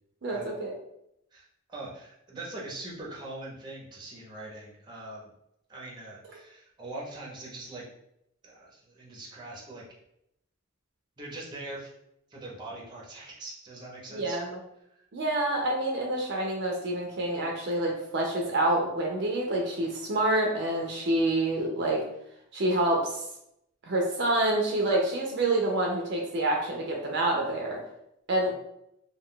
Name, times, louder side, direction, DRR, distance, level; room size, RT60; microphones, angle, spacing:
voice 1, 0.2-0.8 14.1-14.6 15.1-22.0 22.5-23.2 23.8-27.8 28.3-28.5, right 1 dB, 60° right, 0 dB, 0.5 m, -27 dB
voice 2, 1.7-5.3 5.7-7.8 8.4-9.8 11.2-11.9 12.3-14.4 14.9-15.0, right 2 dB, 20° right, -4 dB, 0.7 m, -42 dB
2.3 x 2.3 x 3.7 m, 0.79 s
head